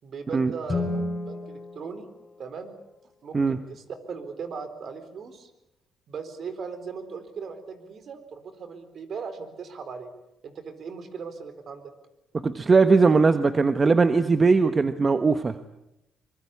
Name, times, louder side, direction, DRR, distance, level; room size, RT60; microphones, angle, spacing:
voice 1, 0.0-2.1 2.4-2.7 3.2-5.5 6.1-10.1 10.4-11.9, right 5 dB, 55° right, 10 dB, 4.2 m, -38 dB
Guitar, 0.7-3.2, left 2 dB, 25° left, 4.3 m, -33 dB
voice 2, 12.4-15.5, right 4 dB, 30° right, 10 dB, 1.3 m, -20 dB
24.5 x 23.0 x 8.5 m, 0.85 s
cardioid pair, 90°, 0 cm